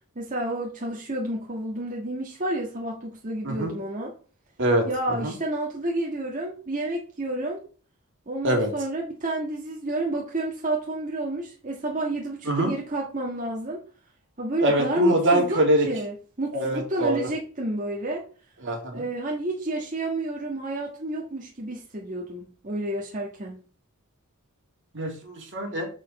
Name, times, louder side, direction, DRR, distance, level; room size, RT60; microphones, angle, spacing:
voice 1, 0.1-4.1 4.8-7.6 8.3-13.8 14.4-18.2 18.9-23.5, right 1 dB, 35° right, -2 dB, 1.6 m, -30 dB
voice 2, 14.6-15.9 16.5-17.2 18.6-19.0 24.9-25.9, right 1 dB, 60° right, 2 dB, 2.5 m, -24 dB
6.9 x 6.8 x 4.2 m, 0.40 s
head